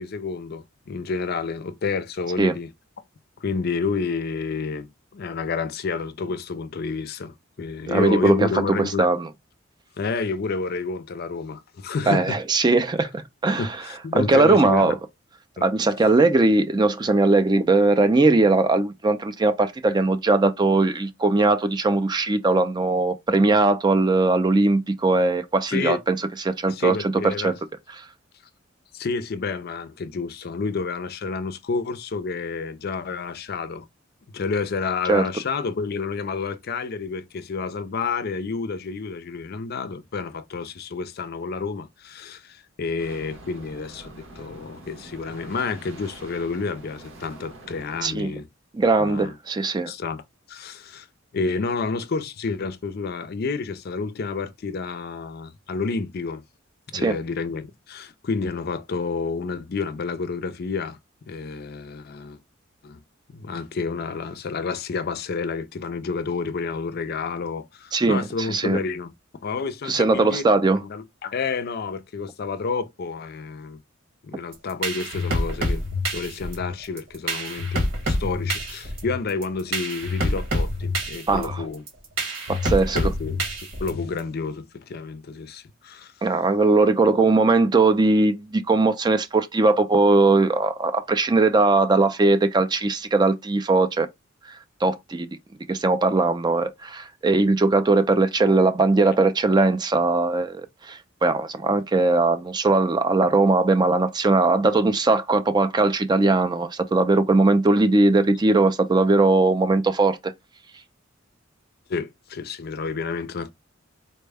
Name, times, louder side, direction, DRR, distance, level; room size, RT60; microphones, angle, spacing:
voice 1, 0.0-2.7 3.4-9.1 10.0-12.4 13.5-14.9 15.6-15.7 25.7-26.0 26.7-27.5 28.9-33.9 34.3-48.5 49.0-49.3 49.9-50.2 50.5-51.1 51.3-56.4 56.9-61.0 61.3-62.4 62.8-63.0 63.3-69.1 69.4-70.4 70.7-73.8 74.2-75.8 76.1-81.8 82.9-83.4 83.8-86.1 111.9-113.5, left 4 dB, 50° left, 0.4 m, -29 dB
voice 2, 7.9-8.5 8.8-9.3 12.1-13.7 14.1-15.0 15.6-27.0 27.2-27.5 35.1-35.3 48.0-48.3 48.7-49.9 56.9-57.2 67.9-68.2 68.5-68.8 69.9-70.8 81.3-81.6 82.5-83.0 86.2-94.1 94.8-95.3 95.7-110.3, right 3 dB, 20° right, 0.3 m, -20 dB
sound 1, 43.0-48.1, right 2 dB, 90° right, 1.4 m, -45 dB
sound 2, 74.5-84.2, equal, 70° right, 1.3 m, -27 dB
4.1 x 2.1 x 3.3 m
head